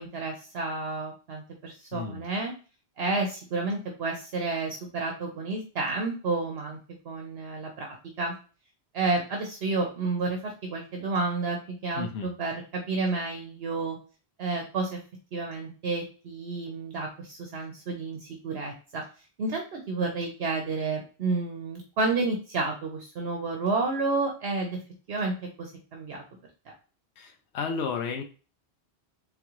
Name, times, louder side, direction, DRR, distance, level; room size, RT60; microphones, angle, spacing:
voice 1, 0.0-2.5 3.0-6.8 7.0-8.3 8.9-14.0 14.4-15.0 15.3-19.0 19.4-24.8 25.1-25.3 25.6-26.2, right 3 dB, 65° right, 1 dB, 1.0 m, -30 dB
voice 2, 12.0-12.3 27.2-28.2, left 5 dB, 80° left, 4 dB, 0.9 m, -32 dB
3.8 x 3.7 x 3.0 m, 0.36 s
omnidirectional pair, 1.1 m